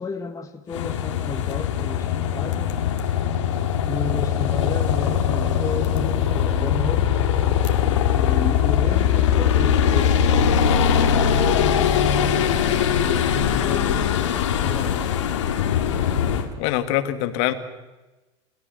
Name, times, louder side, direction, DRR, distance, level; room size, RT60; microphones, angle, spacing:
voice 1, 0.0-2.8 3.9-7.2 8.1-12.1 13.0-14.1 14.5-15.1, left 4 dB, 20° left, 4 dB, 1.7 m, -32 dB
sound 1, 0.7-16.5, left 8 dB, 85° left, 2.2 m, -21 dB
voice 2, 16.6-17.5, left 14 dB, 70° left, 8 dB, 2.1 m, -23 dB
29.5 x 17.0 x 6.4 m, 1.1 s
hypercardioid pair, 85°, 15 cm